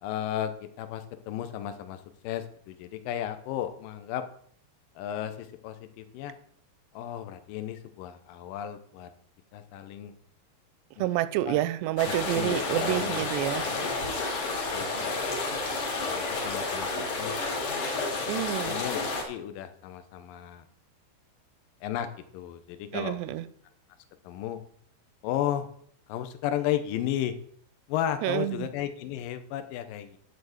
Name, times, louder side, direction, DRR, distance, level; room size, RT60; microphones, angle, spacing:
voice 1, 0.0-4.2 5.0-6.4 6.9-9.1 9.5-10.1 11.0-11.1 11.5-11.6 12.3-13.9 14.5-15.2 16.1-16.9 17.2-17.4 18.3-19.0 19.3-20.6 21.8-22.1 22.3-23.3 24.2-24.6 25.2-25.7 26.1-27.3 27.9-30.2, left 11 dB, 75° left, 2.2 m, -34 dB
voice 2, 11.0-13.7 18.3-18.8 22.9-23.5 28.2-28.7, right 14 dB, 85° right, 2.7 m, -28 dB
sound 1, 12.0-19.2, left 3 dB, 50° left, 3.6 m, -30 dB
11.5 x 4.6 x 7.9 m
omnidirectional pair, 4.8 m